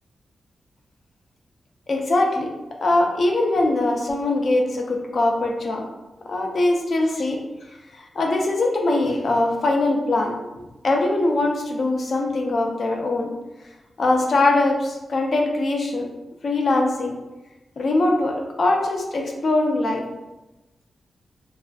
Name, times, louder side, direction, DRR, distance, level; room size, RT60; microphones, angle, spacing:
voice 1, 1.9-2.5 2.8-5.8 6.3-7.4 8.0-10.3 10.8-13.3 14.0-16.1 16.4-17.1 17.8-20.0, left 2 dB, 50° left, 1 dB, 0.4 m, -22 dB
2.4 x 2.2 x 2.4 m, 1.0 s
wide cardioid pair, 170°, 0 cm